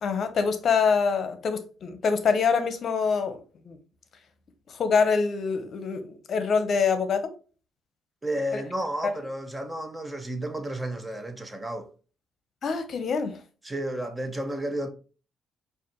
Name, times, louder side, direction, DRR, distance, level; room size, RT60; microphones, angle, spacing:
voice 1, 0.0-3.8 4.7-7.3 8.5-8.6 12.6-13.4, left 5 dB, 55° left, 0.7 m, -25 dB
voice 2, 8.2-11.9 13.6-14.9, right 1 dB, 15° right, 0.8 m, -32 dB
4.8 x 2.5 x 2.9 m
cardioid pair, 90°, 0 cm